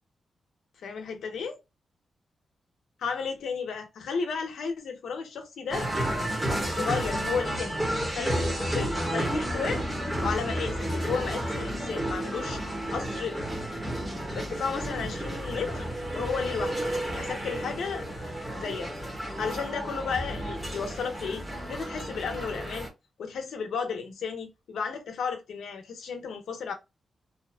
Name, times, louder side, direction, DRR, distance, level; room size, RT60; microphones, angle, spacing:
voice 1, 0.8-1.6 3.0-5.9 6.7-7.7 8.0-9.8 10.2-12.6 12.9-13.4 14.3-15.9 16.1-18.1 18.6-18.9 19.2-22.9 23.2-26.7, left 5 dB, 85° left, 0.7 m, -33 dB
sound 1, 5.7-22.9, right 1 dB, 15° right, 1.3 m, -31 dB
2.7 x 2.5 x 2.3 m
cardioid pair, 100°, 0 cm